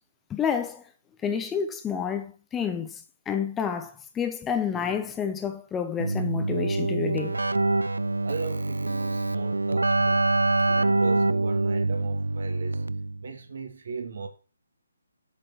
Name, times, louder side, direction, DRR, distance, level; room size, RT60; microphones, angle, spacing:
voice 1, 0.3-0.8 1.2-7.4, left 7 dB, 10° left, 1.0 m, -29 dB
Keyboard (musical), 6.0-13.3, right 2 dB, 85° right, 0.5 m, -25 dB
voice 2, 8.2-10.3 10.7-12.8 13.2-14.3, right 5 dB, 60° right, 2.9 m, -37 dB
8.7 x 7.4 x 6.5 m
figure-of-eight pair, 145°, 0 cm